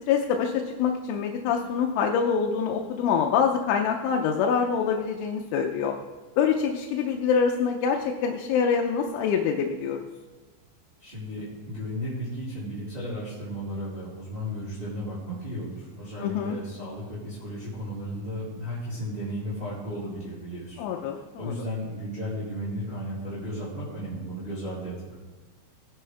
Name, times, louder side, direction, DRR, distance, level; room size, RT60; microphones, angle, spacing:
voice 1, 0.1-5.9 6.4-10.1 16.2-16.6 20.8-21.5, left 6 dB, 80° left, 2 dB, 3.1 m, -25 dB
voice 2, 11.0-20.8 21.4-25.1, equal, 15° right, -11 dB, 3.0 m, -34 dB
20.0 x 9.9 x 3.4 m, 1.3 s
omnidirectional pair, 5.8 m